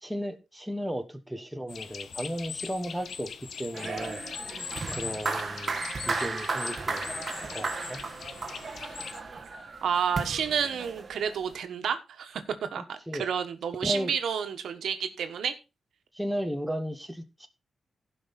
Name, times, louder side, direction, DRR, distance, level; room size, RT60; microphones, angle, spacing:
voice 1, 0.0-4.2 4.9-8.0 13.1-13.2 13.8-14.1 16.1-17.5, equal, ahead, 1.1 m, -35 dB
sound 1, 1.7-9.2, left 6 dB, 60° left, 0.8 m, -41 dB
sound 2, 3.7-11.5, right 4 dB, 35° right, 1.3 m, -35 dB
voice 2, 9.8-12.4 12.7-15.6, right 7 dB, 85° right, 1.3 m, -30 dB
16.0 x 5.6 x 4.1 m
wide cardioid pair, 135°, 0 cm